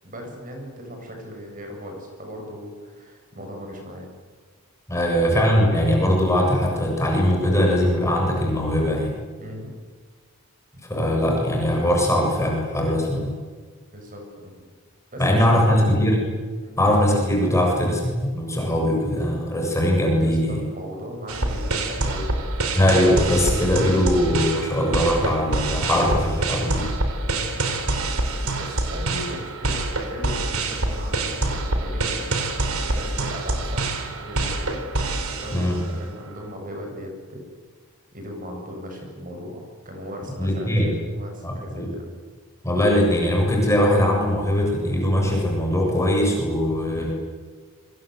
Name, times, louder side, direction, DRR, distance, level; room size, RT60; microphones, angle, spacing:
voice 1, 0.0-4.1 4.9-5.0 9.4-9.7 13.9-14.6 15.1-16.0 16.6-16.8 20.1-22.3 27.3-27.5 28.6-32.2 32.9-34.8 35.4-37.4 38.1-42.1, equal, 35° right, 2 dB, 7.9 m, -37 dB
voice 2, 4.9-9.1 10.9-13.3 15.2-16.2 16.8-20.6 22.7-26.9 35.5-35.8 40.4-40.9 41.4-41.9 42.6-47.1, equal, 15° left, -1 dB, 7.4 m, -21 dB
sound 1, 21.3-36.0, right 2 dB, 70° right, 4.2 m, -26 dB
28.0 x 25.5 x 8.1 m, 1.5 s
head